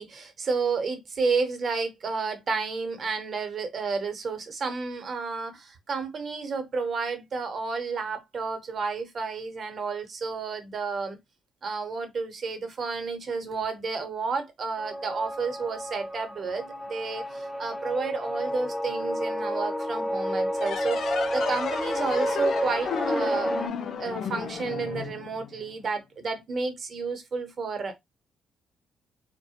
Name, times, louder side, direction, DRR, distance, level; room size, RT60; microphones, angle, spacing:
voice 1, 0.0-11.2 11.6-27.9, right 4 dB, 50° right, 0.8 m, -31 dB
sound 1, 14.8-23.7, equal, 5° left, 0.5 m, -31 dB
sound 2, 20.6-25.8, left 6 dB, 65° left, 0.4 m, -33 dB
2.3 x 2.1 x 2.8 m
cardioid pair, 90°, 0 cm